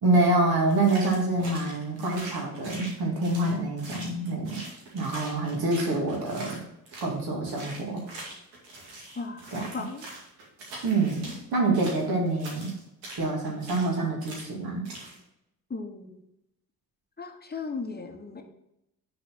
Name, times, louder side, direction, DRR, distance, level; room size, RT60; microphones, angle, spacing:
voice 1, 0.0-4.6 4.9-6.6 7.0-8.0 9.5-9.7 10.8-12.7 13.2-14.9, right 2 dB, 50° right, 0 dB, 2.5 m, -26 dB
sound 1, 0.7-7.2 7.5-11.4 11.7-13.9 14.2-14.5 14.8-15.2, right 2 dB, 70° right, 2.3 m, -42 dB
voice 2, 9.1-10.1 15.7-16.2 17.2-18.4, left 4 dB, 20° left, 4 dB, 1.3 m, -36 dB
10.0 x 4.1 x 4.5 m, 0.84 s
figure-of-eight pair, 45°, 48 cm